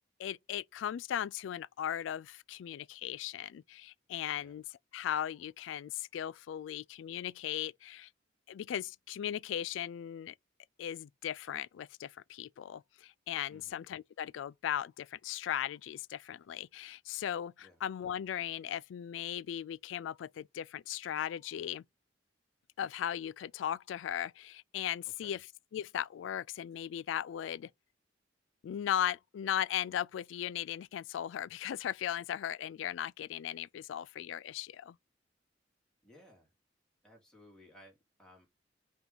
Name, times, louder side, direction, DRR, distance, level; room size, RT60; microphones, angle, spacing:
voice 1, 0.2-4.6 4.9-8.1 8.5-10.3 10.8-21.8 22.8-25.4 25.7-27.7 28.6-35.0, left 10 dB, 80° left, 0.3 m, -37 dB
voice 2, 13.5-13.9 17.6-17.8 25.2-25.4 36.0-36.5 37.0-38.5, equal, 5° left, 3.0 m, -59 dB
5.8 x 3.5 x 5.5 m
head